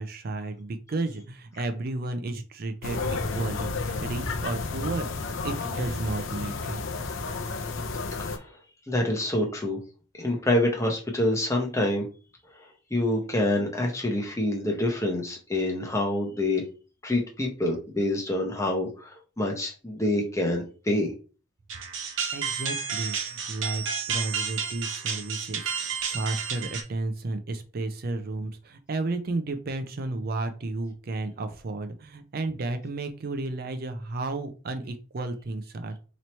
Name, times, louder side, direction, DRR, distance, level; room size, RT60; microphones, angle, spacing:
voice 1, 0.0-3.0 3.3-5.1 5.4-6.8 22.3-35.9, right 2 dB, 50° right, 8 dB, 0.4 m, -33 dB
sound 1, 2.8-8.4, left 3 dB, 70° left, 0.6 m, -31 dB
voice 2, 8.2-8.5 8.9-9.8 10.2-12.1 12.5-16.6 17.0-21.1, left 1 dB, 15° left, 0 dB, 0.8 m, -27 dB
sound 2, 21.7-26.8, right 6 dB, 70° right, 0.9 m, -31 dB
3.0 x 2.7 x 4.3 m, 0.35 s
head